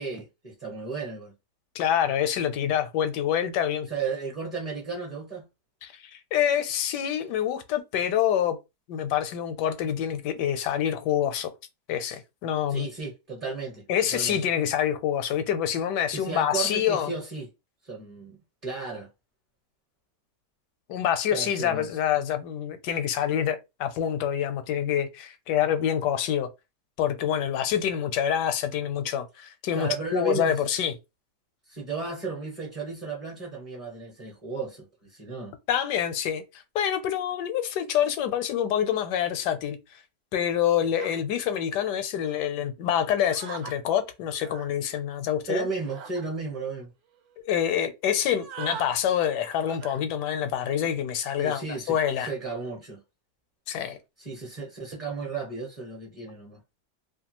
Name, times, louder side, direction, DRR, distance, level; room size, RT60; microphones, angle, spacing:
voice 1, 0.0-1.3 3.9-5.4 12.7-13.8 14.1-14.4 16.1-17.5 17.8-19.1 21.3-21.9 29.7-30.5 31.7-35.5 45.5-46.9 51.4-53.0 54.2-56.6, right 4 dB, 30° right, 0.7 m, -34 dB
voice 2, 1.7-3.9 5.8-8.6 8.9-11.5 11.9-12.9 13.9-17.1 20.9-26.5 27.0-31.0 35.7-39.8 40.3-45.7 47.4-52.3 53.7-54.0, left 9 dB, 80° left, 1.2 m, -26 dB
sound 1, 41.0-41.2 42.2-42.4 43.2-43.8 44.3-44.7 45.8-46.2 46.8-46.9 47.1-47.4 48.2-48.9 49.7-50.0 50.5-50.9, right 8 dB, 70° right, 1.0 m, -41 dB
2.8 x 2.3 x 2.9 m
omnidirectional pair, 1.8 m